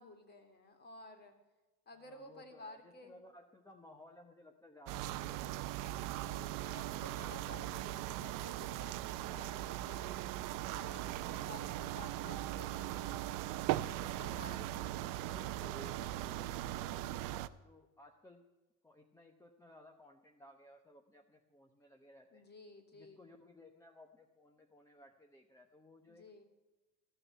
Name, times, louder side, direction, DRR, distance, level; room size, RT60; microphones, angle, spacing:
voice 1, 0.0-1.3 1.9-3.1 6.0-10.3 10.7-13.4 13.8-14.9 22.3-23.3 26.1-26.4, left 2 dB, 25° left, 6 dB, 2.4 m, -54 dB
voice 2, 1.9-6.3 10.9-11.9 13.9-18.5 18.8-22.4 22.9-26.3, left 1 dB, 10° left, 3 dB, 0.8 m, -59 dB
sound 1, 4.9-17.5, right 14 dB, 50° right, 0.7 m, -39 dB
14.5 x 6.7 x 9.9 m, 1.1 s
cardioid pair, 135°, 40 cm